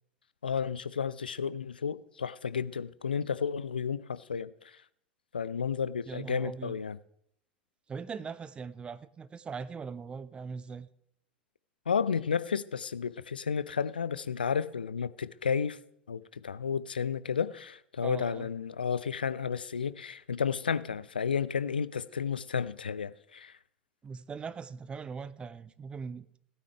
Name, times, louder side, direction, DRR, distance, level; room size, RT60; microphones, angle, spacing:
voice 1, 0.4-4.5 5.3-7.0 11.9-15.8 16.1-23.5, left 6 dB, 75° left, 0.4 m, -32 dB
voice 2, 6.1-6.8 7.9-10.9 18.0-18.5 24.0-26.3, right 5 dB, 20° right, 0.5 m, -40 dB
16.0 x 9.3 x 3.4 m
figure-of-eight pair, 80°, 5 cm